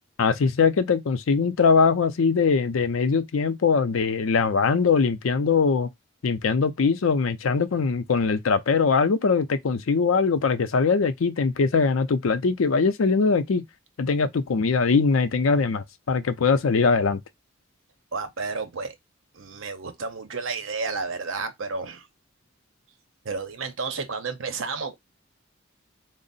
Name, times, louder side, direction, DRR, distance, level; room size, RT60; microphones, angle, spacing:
voice 1, 0.2-5.9 6.2-13.6 14.0-17.2, left 5 dB, 80° left, 0.5 m, -22 dB
voice 2, 18.1-19.0 19.3-22.1 23.2-24.9, right 4 dB, 75° right, 0.7 m, -31 dB
3.6 x 2.0 x 4.0 m
head